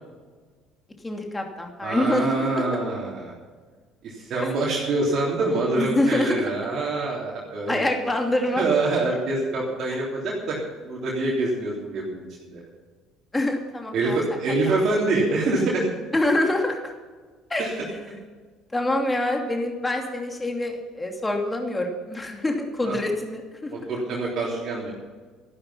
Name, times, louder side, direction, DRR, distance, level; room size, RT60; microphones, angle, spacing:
voice 1, 1.0-2.6 5.8-6.4 7.7-8.6 13.3-14.2 16.1-16.9 17.5-17.7 18.7-23.9, left 1 dB, 15° left, 3 dB, 2.8 m, -25 dB
voice 2, 1.8-3.3 4.0-7.9 8.6-10.6 10.8-12.6 13.9-15.8 17.6-17.7 22.8-23.0 23.7-24.9, right 2 dB, 45° right, -5 dB, 3.5 m, -25 dB
15.0 x 12.0 x 5.7 m, 1.5 s
figure-of-eight pair, 55°, 0 cm